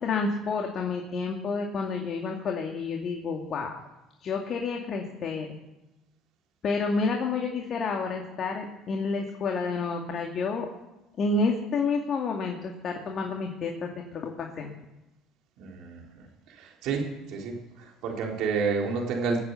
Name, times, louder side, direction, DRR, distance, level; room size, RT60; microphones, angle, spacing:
voice 1, 0.0-3.8 4.2-5.5 6.6-10.7 11.2-14.7, left 4 dB, 50° left, 2 dB, 2.3 m, -29 dB
voice 2, 15.6-17.0 17.3-19.4, right 5 dB, 65° right, 0 dB, 4.1 m, -30 dB
20.5 x 8.4 x 8.2 m, 0.97 s
hypercardioid pair, 80°, 0 cm